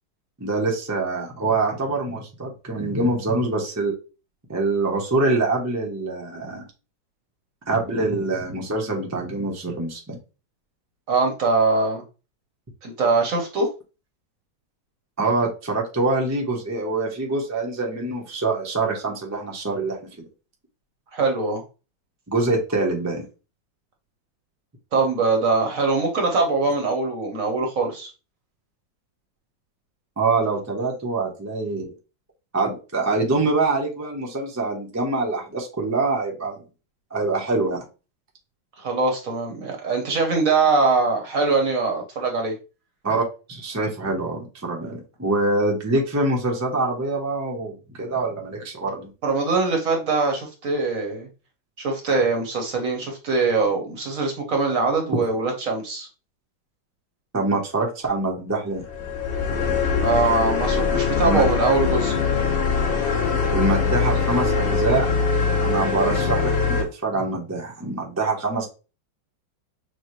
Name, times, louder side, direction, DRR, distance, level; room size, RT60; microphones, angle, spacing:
voice 1, 0.4-3.9 4.5-6.6 7.7-10.2 15.2-20.2 22.3-23.2 30.2-31.9 32.5-36.6 37.1-37.8 43.0-49.1 57.3-58.8 61.2-61.5 63.5-65.1 65.6-68.7, right 2 dB, 20° right, -1 dB, 0.4 m, -25 dB
voice 2, 11.1-12.0 12.8-13.7 21.1-21.6 24.9-28.1 38.8-42.5 49.2-51.3 51.8-56.1 60.0-62.1, right 3 dB, 55° right, 2 dB, 1.1 m, -22 dB
sound 1, 58.8-66.8, left 5 dB, 35° left, 1.2 m, -22 dB
6.2 x 2.2 x 3.1 m, 0.33 s
omnidirectional pair, 2.1 m